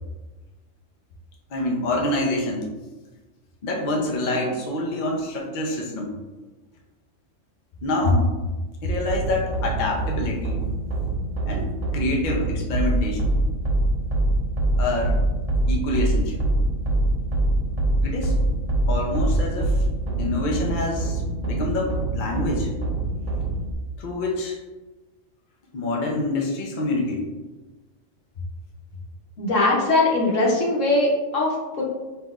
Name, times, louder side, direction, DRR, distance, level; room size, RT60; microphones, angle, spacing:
voice 1, 1.5-2.7 3.6-6.1 7.8-8.3 8.8-10.6 11.4-13.3 14.8-15.2 15.7-16.4 18.0-18.3 18.9-19.8 20.2-22.7 24.0-24.6 25.7-27.2, left 2 dB, 50° left, 0 dB, 0.6 m, -26 dB
sound 1, 9.1-23.7, right 2 dB, 65° right, 1.0 m, -24 dB
voice 2, 29.4-31.8, left 2 dB, 75° left, -3 dB, 1.3 m, -21 dB
5.6 x 2.9 x 2.4 m, 1.2 s
omnidirectional pair, 1.3 m